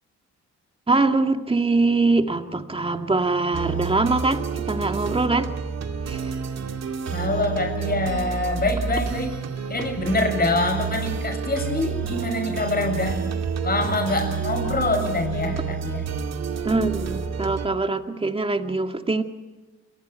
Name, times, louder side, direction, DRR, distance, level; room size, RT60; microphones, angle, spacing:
voice 1, 0.9-5.5 6.1-6.2 16.6-19.2, right 3 dB, 20° right, 5 dB, 2.1 m, -23 dB
sound 1, 3.5-17.7, right 6 dB, 60° right, 2.3 m, -29 dB
voice 2, 7.1-9.3 9.7-13.2 13.6-16.1, left 2 dB, 30° left, 5 dB, 7.3 m, -25 dB
29.0 x 24.0 x 4.6 m, 1.2 s
cardioid pair, 90°, 30 cm